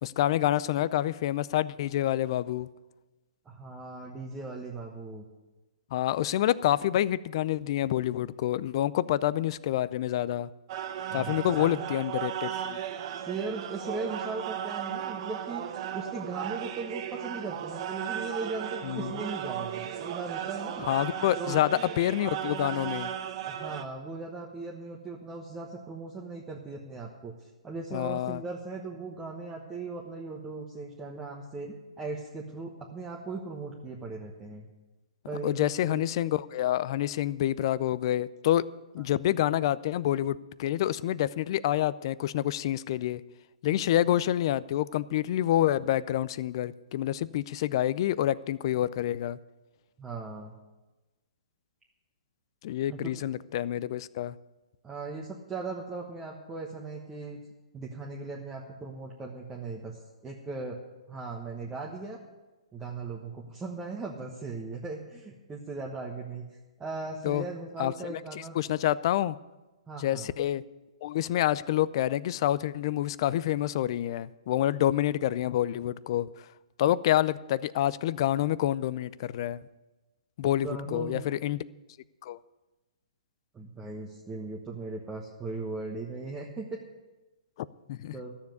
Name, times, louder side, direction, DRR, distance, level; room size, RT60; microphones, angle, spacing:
voice 1, 0.0-2.7 5.9-10.5 11.1-12.8 18.8-19.1 20.8-23.1 27.9-28.4 35.4-38.6 38.9-43.2 43.6-49.4 52.6-54.4 67.2-67.4 67.8-68.2 68.5-69.4 70.0-70.6 71.0-76.5 76.8-79.6 80.4-81.6 82.2-82.4 87.9-88.2, left 12 dB, 45° left, 0.5 m, -27 dB
voice 2, 3.4-5.2 11.1-11.8 13.1-20.9 21.3-21.6 23.5-34.6 35.3-36.0 50.0-50.5 52.9-53.1 54.8-57.4 57.7-60.8 61.1-62.2 62.7-66.4 66.8-68.6 69.9-70.3 80.4-81.2 83.5-86.8 88.1-88.3, right 3 dB, 15° right, 1.2 m, -38 dB
sound 1, 10.7-23.8, right 10 dB, 45° right, 1.0 m, -35 dB
13.0 x 7.2 x 9.4 m
hypercardioid pair, 145°, 4 cm